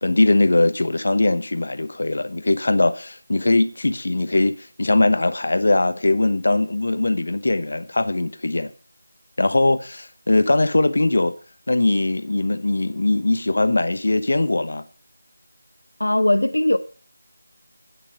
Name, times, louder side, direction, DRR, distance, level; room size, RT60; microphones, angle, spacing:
voice 1, 0.0-8.7 9.4-11.3 11.7-14.8, left 2 dB, 60° left, 1.0 m, -20 dB
voice 2, 16.0-16.8, left 1 dB, 85° left, 0.8 m, -19 dB
9.2 x 8.8 x 5.3 m
figure-of-eight pair, 170°, 0 cm